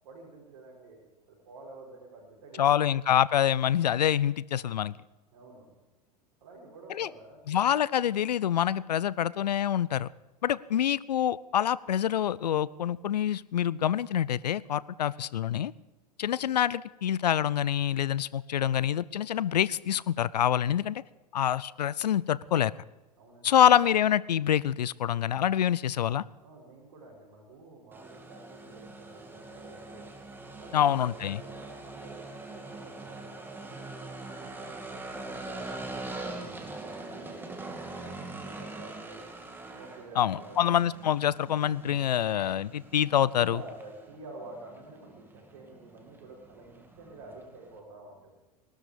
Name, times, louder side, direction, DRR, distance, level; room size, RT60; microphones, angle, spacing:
voice 1, 0.0-2.8 5.3-5.7 6.4-7.5 23.2-23.6 26.4-30.1 30.5-36.5 36.9-39.2 39.7-40.7 43.3-48.3, right 2 dB, 65° right, -6 dB, 5.7 m, -49 dB
voice 2, 2.6-5.0 6.9-7.1 7.5-10.1 10.4-15.7 16.2-21.0 21.3-22.7 23.4-26.2 30.7-31.4 40.2-43.6, left 10 dB, 85° left, 21 dB, 0.5 m, -26 dB
sound 1, 27.9-47.8, right 2 dB, 10° right, 2.4 m, -43 dB
20.0 x 13.0 x 5.2 m, 1.1 s
hypercardioid pair, 100°, 20 cm